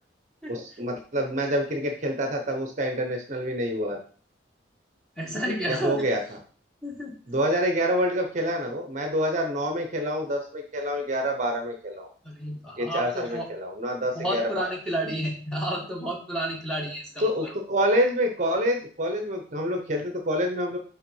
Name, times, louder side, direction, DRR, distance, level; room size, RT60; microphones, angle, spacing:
voice 1, 0.5-4.0 5.7-6.2 7.3-12.1 12.8-14.7 17.2-20.8, equal, 40° right, 4 dB, 0.8 m, -27 dB
voice 2, 5.2-6.0 6.8-7.2 12.2-13.5 14.1-17.5, equal, 5° left, -1 dB, 1.3 m, -31 dB
5.6 x 3.6 x 5.4 m, 0.42 s
head